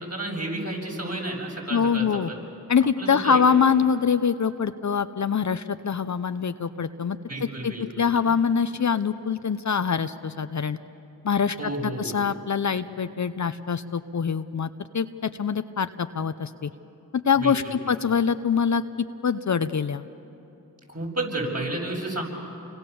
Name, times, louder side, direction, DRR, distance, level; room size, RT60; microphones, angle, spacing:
voice 1, 0.0-2.4 3.0-3.4 7.3-8.4 11.6-12.2 17.4-17.8 20.9-22.2, right 1 dB, 40° right, -1 dB, 7.4 m, -32 dB
voice 2, 1.7-2.3 2.7-7.2 7.6-10.8 11.2-14.7 14.9-16.7 17.3-18.8 19.2-20.0, left 6 dB, 50° left, 10 dB, 0.9 m, -24 dB
29.5 x 24.5 x 7.1 m, 2.9 s
cardioid pair, 45°, 38 cm